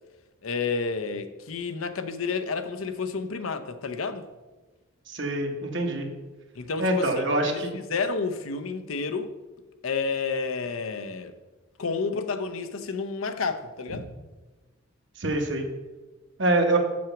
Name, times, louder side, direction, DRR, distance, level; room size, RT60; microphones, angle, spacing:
voice 1, 0.4-4.3 6.6-9.3 9.8-11.3 11.8-14.1, left 4 dB, 90° left, 0.7 m, -30 dB
voice 2, 5.1-6.1 6.8-7.7 15.2-15.7 16.4-16.8, right 1 dB, 60° right, 1.3 m, -25 dB
6.1 x 6.0 x 7.0 m
head